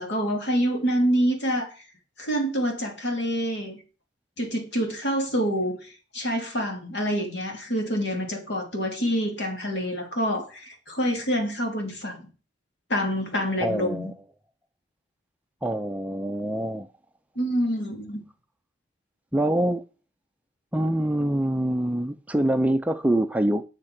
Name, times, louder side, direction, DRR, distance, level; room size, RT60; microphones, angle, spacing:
voice 1, 0.0-1.7 2.2-3.8 4.4-5.8 6.1-12.2 12.9-14.0 17.4-18.2, equal, 65° left, 3.1 m, -26 dB
voice 2, 13.6-14.1 15.6-16.9 19.3-19.8 20.7-23.6, right 1 dB, 10° right, 0.4 m, -25 dB
10.5 x 6.5 x 6.0 m
head